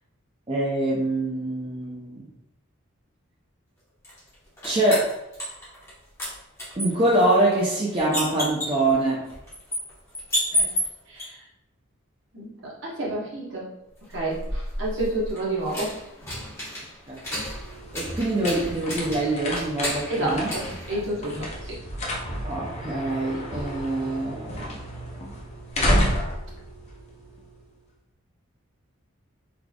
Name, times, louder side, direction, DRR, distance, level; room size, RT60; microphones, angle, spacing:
voice 1, 0.5-2.2 4.6-5.1 6.7-9.3 17.1-17.2 17.9-20.5 22.4-24.8, right 1 dB, 25° right, -5 dB, 0.5 m, -24 dB
sound 1, 4.0-5.9 6.2-11.2 14.0-21.5, equal, 15° left, 1.1 m, -32 dB
voice 2, 11.1-11.4 12.3-13.7 14.1-15.9 20.1-21.8, right 1 dB, 60° right, -5 dB, 1.1 m, -30 dB
sound 2, 17.1-27.8, equal, 30° left, 0.6 m, -31 dB
3.9 x 3.2 x 2.3 m, 0.85 s
head